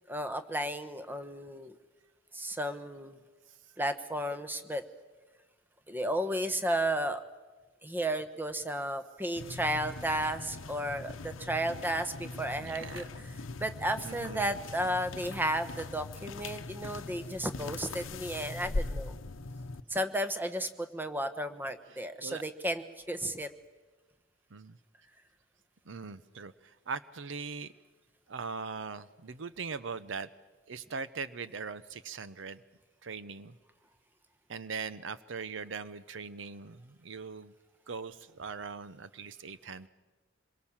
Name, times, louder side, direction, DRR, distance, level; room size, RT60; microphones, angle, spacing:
voice 1, 0.1-1.7 2.3-3.2 3.8-4.8 5.9-7.2 7.8-13.0 13.6-19.1 19.9-23.5, right 1 dB, 10° right, 10 dB, 1.1 m, -33 dB
sound 1, 9.4-19.8, left 2 dB, 90° left, 0.9 m, -41 dB
voice 2, 12.6-13.0 14.0-14.6 21.9-22.4 24.5-24.8 25.9-27.7 28.3-30.3 30.7-32.6 33.0-33.5 34.5-37.5 37.9-39.9, right 5 dB, 70° right, 15 dB, 0.7 m, -41 dB
26.0 x 22.5 x 7.3 m, 1.2 s
head